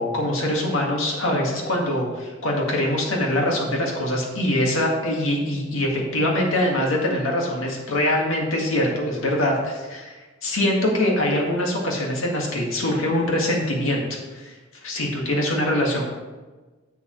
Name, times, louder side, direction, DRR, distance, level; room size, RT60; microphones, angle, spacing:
voice 1, 0.0-10.1 10.4-14.5 14.8-16.1, left 1 dB, 85° left, -1 dB, 1.9 m, -23 dB
10.0 x 7.0 x 3.2 m, 1.3 s
head